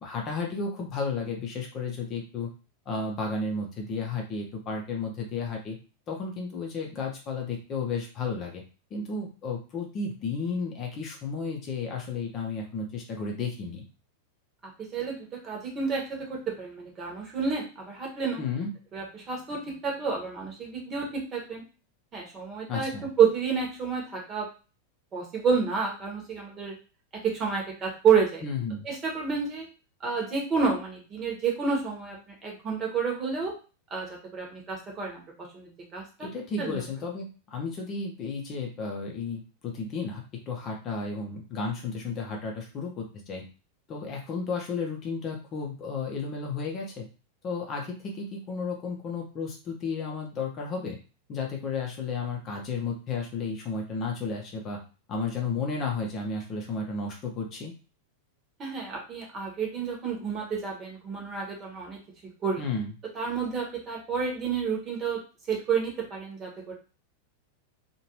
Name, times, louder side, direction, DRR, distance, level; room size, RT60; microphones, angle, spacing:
voice 1, 0.0-2.5 2.9-5.8 6.1-8.6 8.9-13.8 18.4-18.7 22.7-23.1 28.4-28.9 36.2-43.4 43.9-47.1 47.4-51.0 51.3-54.8 55.1-57.7 62.6-62.9, left 4 dB, 30° left, 0 dB, 0.8 m, -33 dB
voice 2, 14.9-18.4 18.9-21.6 22.1-22.9 23.2-24.5 25.1-26.7 27.2-28.4 28.8-29.7 30.0-32.2 32.4-33.5 33.9-35.2 35.5-36.3 36.6-36.8 58.6-62.0 62.4-62.6 63.1-65.2 65.5-66.7, right 6 dB, 25° right, -1 dB, 1.2 m, -29 dB
2.9 x 2.6 x 3.0 m, 0.34 s
figure-of-eight pair, 90°, 0 cm